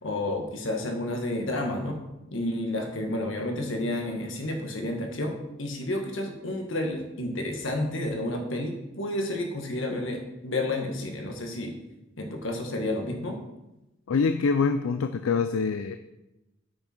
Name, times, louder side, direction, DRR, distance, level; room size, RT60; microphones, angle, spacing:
voice 1, 0.0-2.0 2.3-11.7 12.2-13.4, left 1 dB, 70° left, 3 dB, 1.5 m, -30 dB
voice 2, 14.1-16.0, left 5 dB, 90° left, 9 dB, 0.4 m, -25 dB
8.4 x 6.0 x 4.4 m, 0.94 s
head